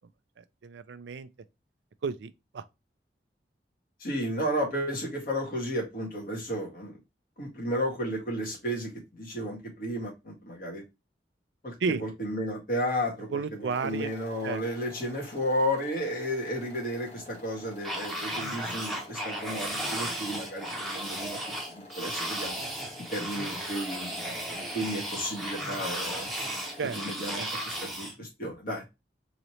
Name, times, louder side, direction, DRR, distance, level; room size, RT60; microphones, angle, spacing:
voice 1, 0.4-1.3 2.0-2.6 11.8-12.0 13.3-14.1 14.4-14.6 26.8-27.0 27.4-27.5, right 5 dB, 80° right, 0.4 m, -32 dB
voice 2, 4.0-7.0 7.4-10.8 11.6-21.4 21.7-22.6 23.1-26.3 26.9-28.8, equal, 50° left, 1.7 m, -33 dB
sound 1, 13.7-27.0, left 1 dB, 35° left, 1.5 m, -49 dB
sound 2, 17.8-28.1, right 1 dB, ahead, 0.9 m, -35 dB
3.9 x 2.9 x 3.0 m
head